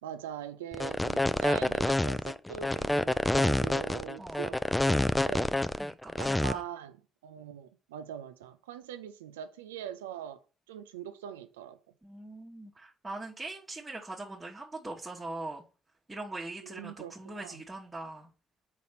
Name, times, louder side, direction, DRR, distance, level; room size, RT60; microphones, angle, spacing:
voice 1, 0.0-5.5 6.1-7.0 7.2-10.4 10.7-11.8 16.6-17.6, right 10 dB, 80° right, 0.4 m, -42 dB
sound 1, 0.7-6.5, left 1 dB, 10° left, 0.4 m, -27 dB
voice 2, 4.2-4.5 5.8-6.6 12.0-15.6 16.1-18.3, right 2 dB, 20° right, 1.1 m, -41 dB
4.3 x 4.0 x 5.5 m
hypercardioid pair, 45°, 0 cm